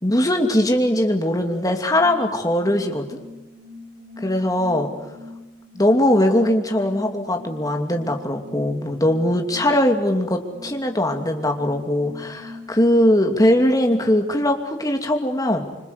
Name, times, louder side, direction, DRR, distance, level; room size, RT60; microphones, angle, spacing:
voice 1, 0.0-3.2 4.2-4.9 5.7-15.7, left 1 dB, 20° left, 4 dB, 2.7 m, -20 dB
sound 1, 1.9-14.3, left 2 dB, 60° right, 5.2 m, -42 dB
26.0 x 26.0 x 8.3 m, 1.1 s
head